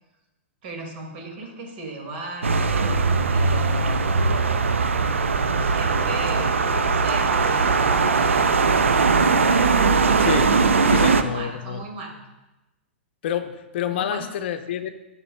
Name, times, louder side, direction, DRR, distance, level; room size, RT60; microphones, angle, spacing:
voice 1, 0.6-4.4 5.5-9.0 10.8-12.2 13.9-14.2, right 2 dB, 55° right, 2 dB, 2.0 m, -37 dB
sound 1, 2.4-11.2, right 4 dB, 85° right, 0.5 m, -20 dB
voice 2, 10.2-10.5 10.9-11.8 13.2-14.9, left 9 dB, 60° left, 9 dB, 0.6 m, -28 dB
12.0 x 5.6 x 2.2 m, 1.0 s
hypercardioid pair, 115°, 7 cm